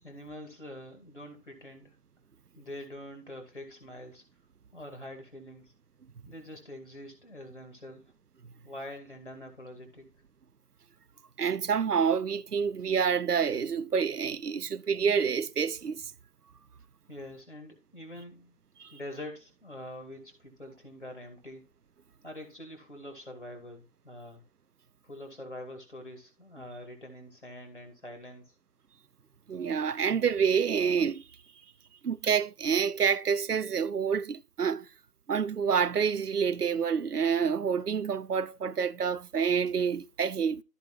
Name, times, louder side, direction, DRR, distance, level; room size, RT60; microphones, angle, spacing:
voice 1, 0.0-2.0 2.6-4.2 4.7-5.7 6.3-8.1 8.6-10.1 17.1-18.6 18.9-21.6 22.2-24.4 25.0-28.5, left 1 dB, 50° left, 2.6 m, -45 dB
voice 2, 11.4-16.1 18.8-18.9 29.5-31.2 32.0-34.9 35.3-40.6, right 6 dB, 75° right, 0.7 m, -28 dB
14.0 x 5.2 x 3.2 m
figure-of-eight pair, 175°, 46 cm